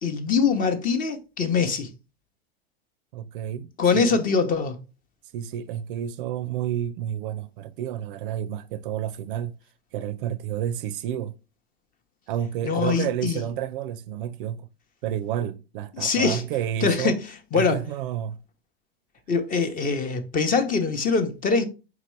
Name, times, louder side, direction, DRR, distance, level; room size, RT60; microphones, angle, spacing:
voice 1, 0.0-1.9 3.8-4.8 12.6-13.4 16.0-16.4 16.8-17.2 17.5-17.8 19.3-21.7, left 5 dB, 30° left, 0.7 m, -23 dB
voice 2, 3.1-4.2 5.3-9.6 9.9-11.3 12.3-14.7 15.0-17.2 17.5-18.4, right 10 dB, 60° right, 0.5 m, -30 dB
4.6 x 2.9 x 3.1 m
hypercardioid pair, 105°, 30 cm